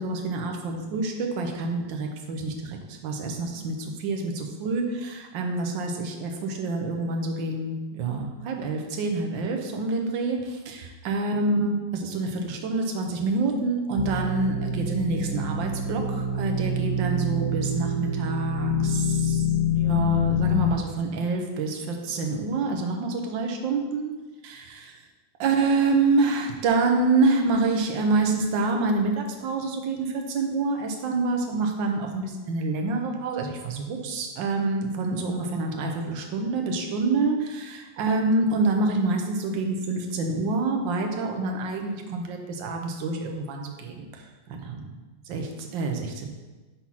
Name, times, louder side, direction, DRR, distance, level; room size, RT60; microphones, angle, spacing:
voice 1, 0.0-10.8 11.0-19.4 19.7-24.1 24.4-24.6 25.4-44.9 45.3-46.3, right 3 dB, 70° right, 3 dB, 1.5 m, -27 dB
sound 1, 14.0-20.7, left 3 dB, 70° left, 1.1 m, -26 dB
6.0 x 4.1 x 5.7 m, 1.2 s
omnidirectional pair, 2.3 m